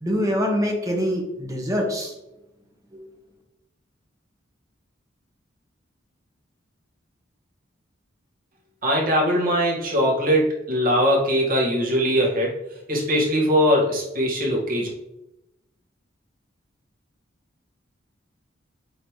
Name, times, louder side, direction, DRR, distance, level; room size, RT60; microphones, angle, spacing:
voice 1, 0.0-2.1 2.9-3.0, equal, 20° right, 0 dB, 1.4 m, -24 dB
voice 2, 8.8-12.5 12.9-14.9, equal, 50° right, -3 dB, 2.2 m, -21 dB
8.5 x 4.0 x 3.3 m, 0.90 s
head